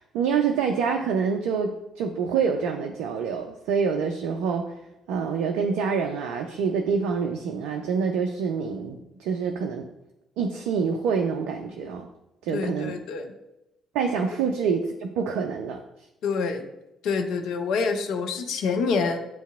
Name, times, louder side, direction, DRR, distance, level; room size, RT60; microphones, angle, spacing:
voice 1, 0.0-4.7 5.1-9.9 10.4-12.1 12.4-13.0 13.9-15.8, right 6 dB, 65° right, 3 dB, 0.3 m, -26 dB
voice 2, 12.5-13.3 16.2-16.7 17.0-19.2, left 5 dB, 65° left, 6 dB, 0.5 m, -26 dB
7.5 x 2.7 x 2.3 m, 0.92 s
figure-of-eight pair, 45°, 0 cm